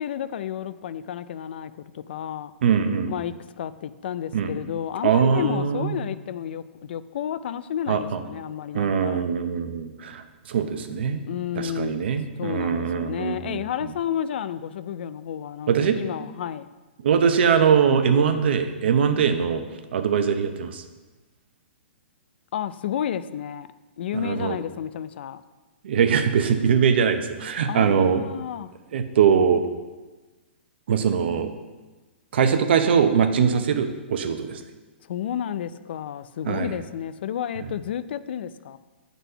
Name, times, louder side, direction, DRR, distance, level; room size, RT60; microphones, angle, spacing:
voice 1, 0.0-2.5 3.1-9.2 11.3-12.1 12.4-16.7 22.5-23.7 24.0-25.4 27.7-28.7 35.1-38.8, left 9 dB, 60° left, 15 dB, 0.4 m, -31 dB
voice 2, 2.6-3.1 4.3-4.5 5.0-6.0 7.9-8.2 8.7-10.2 10.5-11.2 11.6-13.6 15.7-16.0 17.0-19.6 19.9-20.8 24.1-24.6 25.8-28.2 28.9-29.6 30.9-31.5 32.3-34.6 36.4-36.7, right 7 dB, 65° right, 8 dB, 0.8 m, -22 dB
8.0 x 4.1 x 5.5 m, 1.2 s
hypercardioid pair, 145°, 6 cm